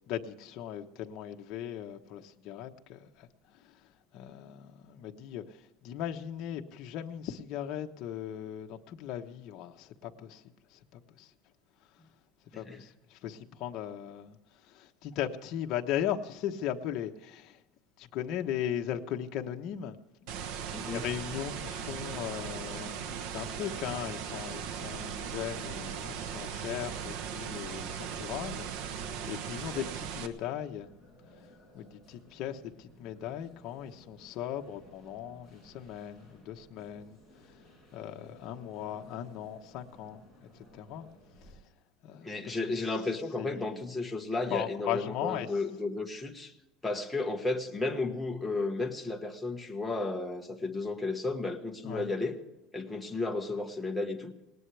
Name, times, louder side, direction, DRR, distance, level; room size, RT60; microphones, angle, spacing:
voice 1, 0.1-3.3 3.6-3.7 4.1-10.4 10.7-11.3 12.5-14.4 14.7-17.6 18.0-20.0 20.8-30.9 31.4-37.2 37.5-37.6 37.9-41.1 42.0-42.8 43.4-43.8 44.5-45.5 51.8-52.1, left 10 dB, 50° left, 1.1 m, -38 dB
voice 2, 12.5-12.9 20.7-21.1 42.2-46.5 46.8-52.4 52.7-54.4, left 3 dB, 5° left, 1.4 m, -33 dB
sound 1, 20.3-30.3, right 7 dB, 65° right, 1.2 m, -38 dB
sound 2, 26.4-41.5, equal, 10° right, 7.1 m, -58 dB
19.0 x 18.5 x 3.4 m
cardioid pair, 155°, 0 cm